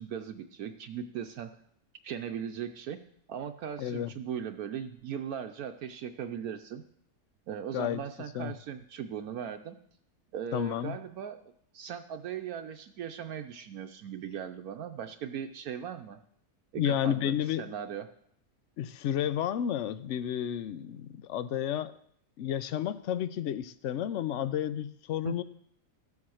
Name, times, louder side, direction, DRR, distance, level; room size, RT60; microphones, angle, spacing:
voice 1, 0.0-1.6 2.0-3.0 3.3-6.8 7.5-9.8 10.3-11.4 11.7-16.2 16.7-17.3 17.6-18.1 25.2-25.4, right 8 dB, 70° right, 7 dB, 1.1 m, -38 dB
voice 2, 3.8-4.1 7.7-8.0 8.3-8.5 10.5-11.0 16.7-17.7 18.8-21.9 22.4-25.4, left 10 dB, 65° left, 14 dB, 0.8 m, -31 dB
14.0 x 7.2 x 6.3 m, 0.68 s
omnidirectional pair, 1.7 m